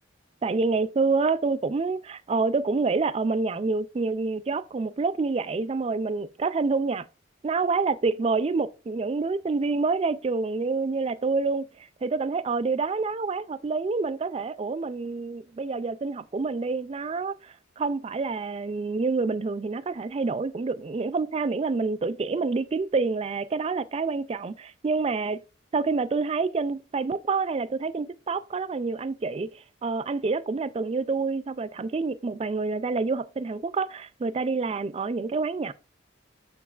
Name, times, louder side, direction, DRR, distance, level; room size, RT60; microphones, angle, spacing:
voice 1, 0.4-7.1 7.4-11.7 12.0-25.4 25.7-29.5 29.8-35.7, right 4 dB, 30° right, 0.3 m, -27 dB
7.0 x 6.5 x 2.4 m
head